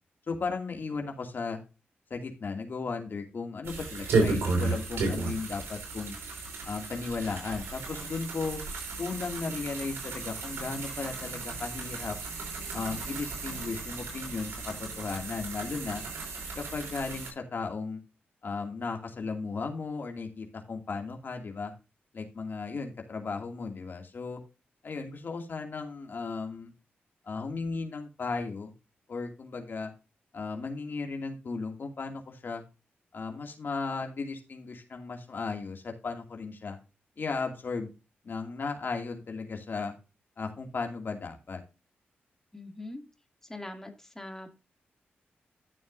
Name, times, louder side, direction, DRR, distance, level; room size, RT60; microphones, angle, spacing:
voice 1, 0.3-1.6 2.1-6.2 6.6-8.6 9.0-12.2 12.7-16.0 16.6-18.0 18.4-21.7 22.1-24.4 24.8-26.7 27.3-28.7 29.1-29.9 30.3-32.6 33.1-36.8 37.2-37.9 38.2-39.9 40.4-41.6, left 4 dB, 55° left, 3 dB, 2.5 m, -35 dB
sound 1, 3.6-17.3, right 3 dB, 90° right, 4.9 m, -34 dB
voice 2, 42.5-43.0 43.4-44.5, left 2 dB, 10° left, 4 dB, 2.7 m, -42 dB
13.0 x 7.2 x 2.7 m, 0.29 s
cardioid pair, 65°, 4 cm